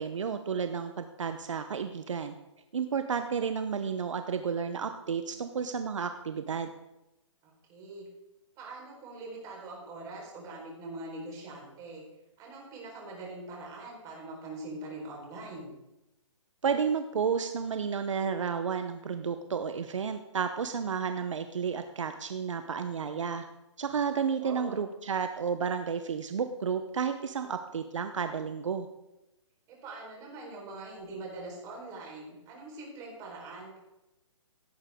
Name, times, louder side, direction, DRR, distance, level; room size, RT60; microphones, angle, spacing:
voice 1, 0.0-2.3 2.7-6.7 16.6-23.4 23.8-28.9, right 6 dB, 70° right, 8 dB, 1.0 m, -32 dB
voice 2, 7.4-8.1 8.6-12.0 12.4-15.7 24.1-24.9 29.7-33.8, right 2 dB, 20° right, -2 dB, 4.5 m, -43 dB
16.5 x 8.9 x 3.7 m, 0.93 s
hypercardioid pair, 150°, 16 cm